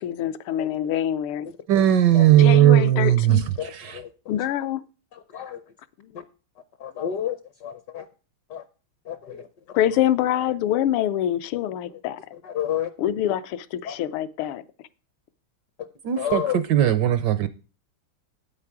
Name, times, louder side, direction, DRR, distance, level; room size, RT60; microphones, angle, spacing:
voice 1, 0.0-1.5 2.3-3.5 4.3-4.8 6.0-6.2 9.8-12.2 13.0-14.6, left 11 dB, 80° left, 1.6 m, -25 dB
voice 2, 1.7-4.0 16.0-17.5, right 12 dB, 75° right, 1.0 m, -18 dB
voice 3, 3.6-4.1 5.3-5.6 6.8-7.3 8.5-8.6 9.1-9.5 12.4-12.9 13.8-14.0 16.2-16.6, left 10 dB, 65° left, 1.1 m, -29 dB
8.7 x 8.5 x 4.7 m
omnidirectional pair, 2.4 m